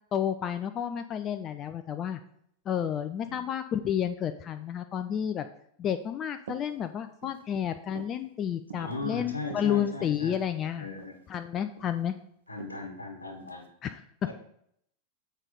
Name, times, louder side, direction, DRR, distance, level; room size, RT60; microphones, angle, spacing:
voice 1, 0.1-2.2 2.7-5.5 5.8-10.9 11.3-12.1 13.8-14.3, left 9 dB, 30° left, 9 dB, 0.4 m, -31 dB
sound 1, 6.4-6.7 7.1-7.5 7.9-8.2 8.7-9.0 9.4-10.4 11.0-11.2 11.5-12.0 12.6-12.8 13.4-13.7, right 8 dB, 65° right, 0.6 m, -46 dB
voice 2, 8.7-10.4 10.8-11.2 12.5-13.7 14.3-14.4, left 3 dB, 80° left, 3 dB, 1.3 m, -38 dB
7.2 x 5.1 x 4.0 m, 0.70 s
figure-of-eight pair, 90°, 0 cm